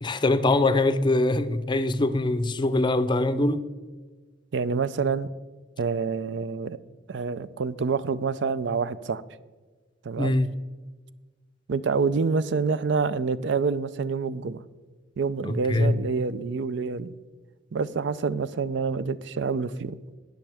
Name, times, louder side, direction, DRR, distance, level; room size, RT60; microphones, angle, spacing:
voice 1, 0.0-3.6 10.2-10.5 15.4-16.0, left 2 dB, 25° left, 0.5 m, -23 dB
voice 2, 4.5-5.3 5.8-6.8 7.1-9.2 10.0-10.3 11.7-14.6 15.2-17.1 17.7-20.0, right 5 dB, 70° right, 0.5 m, -27 dB
18.5 x 6.4 x 3.5 m
head